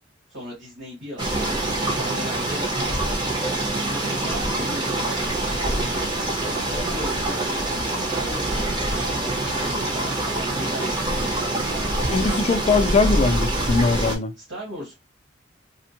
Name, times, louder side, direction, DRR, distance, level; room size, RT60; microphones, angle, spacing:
voice 1, 0.3-1.5 1.9-2.7 3.8-12.1 14.4-14.9, equal, 70° right, 2.2 m, -38 dB
sound 1, 1.2-14.2, right 1 dB, 25° right, 0.8 m, -25 dB
voice 2, 12.1-14.3, left 3 dB, 35° left, 0.3 m, -21 dB
4.2 x 2.1 x 2.8 m
head